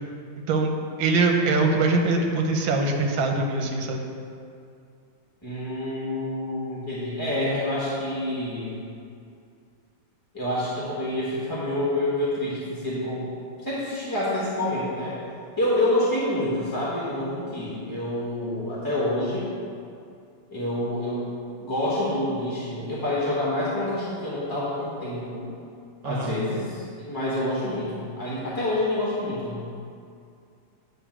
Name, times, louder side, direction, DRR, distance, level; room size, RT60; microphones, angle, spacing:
voice 1, 1.0-4.0 26.0-26.3, right 3 dB, 80° right, 3 dB, 1.5 m, -23 dB
voice 2, 5.4-8.8 10.3-13.2 13.6-15.2 15.6-19.5 20.5-21.3 21.6-25.5 26.0-29.6, left 1 dB, 15° left, -8 dB, 0.8 m, -27 dB
9.4 x 3.2 x 6.0 m, 2.4 s
omnidirectional pair, 2.1 m